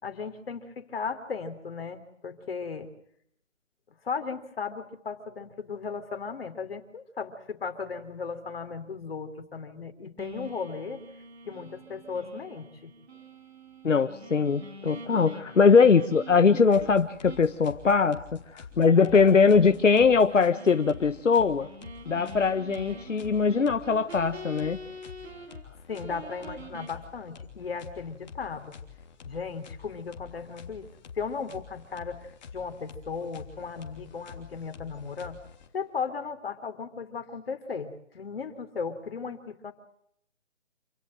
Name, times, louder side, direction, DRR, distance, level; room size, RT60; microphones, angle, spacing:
voice 1, 0.0-2.9 4.0-11.0 11.5-12.9 25.9-28.7 29.2-30.9 31.2-35.4 35.7-39.7, left 5 dB, 50° left, 7 dB, 3.7 m, -36 dB
sound 1, 10.2-16.9 17.2-17.5 17.9-18.0 18.8-25.6 25.9-26.9, right 1 dB, 60° right, 5.6 m, -45 dB
voice 2, 13.8-21.7 22.1-24.8, left 5 dB, 90° left, 10 dB, 1.4 m, -21 dB
sound 2, 16.6-36.0, left 6 dB, 35° left, 3.2 m, -48 dB
28.0 x 17.0 x 7.8 m, 0.71 s
hypercardioid pair, 165°, 36 cm